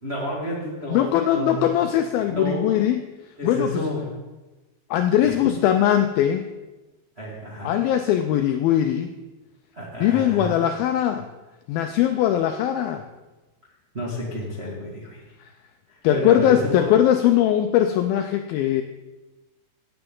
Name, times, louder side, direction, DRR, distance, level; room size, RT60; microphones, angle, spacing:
voice 1, 0.0-1.7 2.3-2.7 3.4-4.0 5.2-5.3 7.2-7.7 9.7-10.5 13.9-15.2 15.9-16.7, equal, 85° right, -5 dB, 0.5 m, -30 dB
voice 2, 0.9-3.0 3.4-3.8 4.9-6.5 7.6-9.1 10.0-11.3 11.7-13.0 15.4-15.5 16.0-18.8, left 11 dB, 85° left, 6 dB, 2.1 m, -20 dB
16.5 x 8.9 x 3.8 m, 1.1 s
omnidirectional pair, 4.9 m